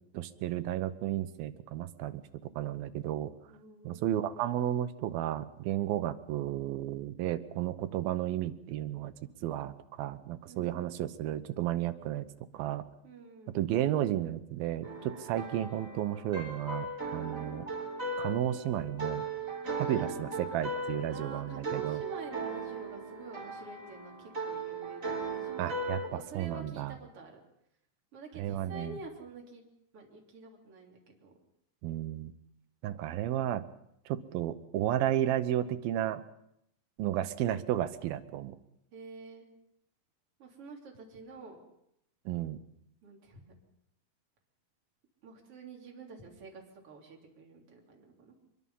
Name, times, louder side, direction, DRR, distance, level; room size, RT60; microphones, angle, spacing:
voice 1, 0.1-3.3 3.8-9.1 9.4-12.3 12.5-12.8 13.5-17.6 18.2-19.3 19.8-22.0 25.6-26.9 28.4-29.0 31.8-32.3 32.8-33.6 34.1-36.2 37.0-38.6 42.3-42.6, right 12 dB, 80° right, 11 dB, 2.7 m, -33 dB
voice 2, 3.5-4.1 10.5-11.0 13.0-13.6 19.8-20.2 21.1-25.6 26.1-27.4 28.1-29.6 29.9-31.4 38.9-39.5 40.4-41.6 43.0-43.5 45.2-48.4, right 3 dB, 40° right, 0 dB, 4.0 m, -48 dB
sound 1, 14.8-26.1, right 3 dB, 20° right, 3.9 m, -38 dB
25.0 x 22.0 x 5.6 m, 0.77 s
omnidirectional pair, 4.4 m